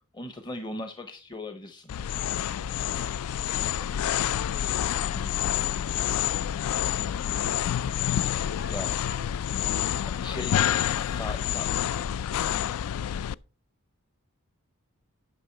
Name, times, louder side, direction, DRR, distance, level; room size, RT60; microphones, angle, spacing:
voice 1, 0.1-1.9 5.1-5.4 8.7-8.9 10.1-10.6 11.0-11.7, left 2 dB, 20° left, 7 dB, 0.7 m, -38 dB
sound 1, 1.9-13.3, left 10 dB, 85° left, 0.3 m, -28 dB
voice 2, 2.2-5.1 8.5-11.6, left 3 dB, 55° left, 6 dB, 2.8 m, -49 dB
10.0 x 5.7 x 4.4 m, 0.35 s
head